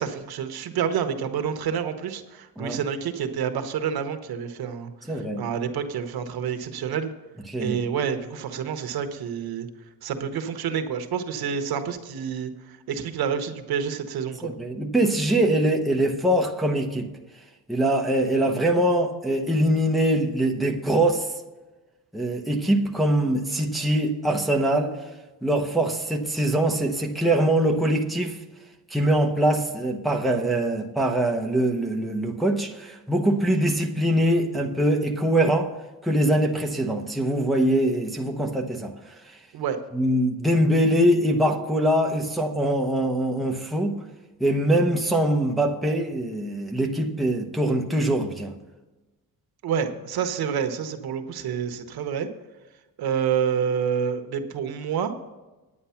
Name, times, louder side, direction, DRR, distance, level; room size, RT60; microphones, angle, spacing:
voice 1, 0.0-7.1 7.6-9.7 10.0-14.5 39.5-39.8 49.6-52.3 53.0-55.1, right 7 dB, 80° right, 8 dB, 1.2 m, -28 dB
voice 2, 5.1-5.4 7.5-7.8 14.4-17.1 17.7-21.3 22.1-25.0 25.4-28.4 28.9-35.7 36.0-38.9 39.3-39.4 39.9-44.0 44.4-48.5, right 1 dB, ahead, 1 dB, 0.8 m, -23 dB
9.8 x 9.4 x 5.8 m, 1.1 s
cardioid pair, 175°, 36 cm